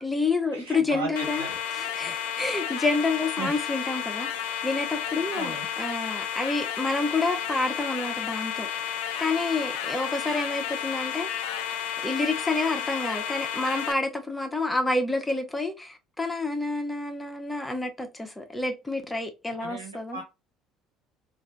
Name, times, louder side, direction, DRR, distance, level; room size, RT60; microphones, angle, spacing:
voice 1, 0.0-1.5 1.7-4.3 4.6-11.5 12.0-20.2, left 3 dB, 10° left, 0.8 m, -29 dB
voice 2, 0.5-1.6 3.4-3.6 5.3-5.7 19.6-20.2, right 3 dB, 90° right, 1.0 m, -36 dB
sound 1, 1.2-13.9, left 9 dB, 70° left, 0.4 m, -32 dB
3.1 x 2.5 x 2.3 m
figure-of-eight pair, 60°, 0 cm